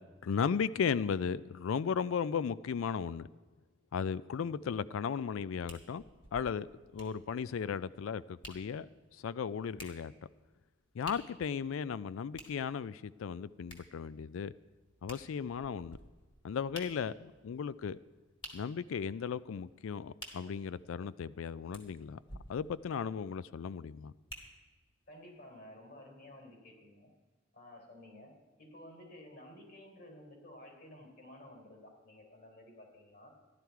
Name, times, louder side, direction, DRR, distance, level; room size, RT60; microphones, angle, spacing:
voice 1, 0.2-3.3 3.9-6.0 6.3-6.7 6.9-8.9 9.2-10.1 10.9-14.5 15.0-16.0 16.4-18.0 18.5-22.2 22.5-24.1, left 6 dB, 90° left, 0.4 m, -35 dB
sound 1, 5.7-24.9 25.5-25.6, equal, 25° left, 1.8 m, -54 dB
voice 2, 25.1-27.1 27.5-33.3, left 1 dB, 55° left, 3.6 m, -53 dB
14.0 x 11.5 x 4.6 m
head